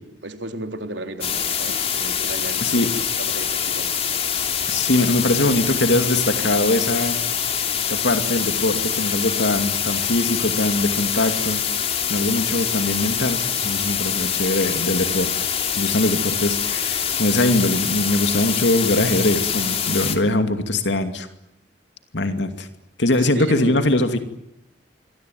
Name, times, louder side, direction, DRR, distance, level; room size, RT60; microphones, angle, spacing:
voice 1, 0.2-2.8 3.2-3.9 23.2-23.8, right 1 dB, 80° right, 6 dB, 3.7 m, -34 dB
sound 1, 1.2-20.2, left 8 dB, 35° left, 3.1 m, -24 dB
voice 2, 2.6-2.9 4.7-7.2 7.9-11.6 12.1-15.3 15.8-21.3 22.1-22.7 23.0-24.2, left 1 dB, 75° left, 8 dB, 2.6 m, -22 dB
26.5 x 24.0 x 9.5 m, 0.86 s
head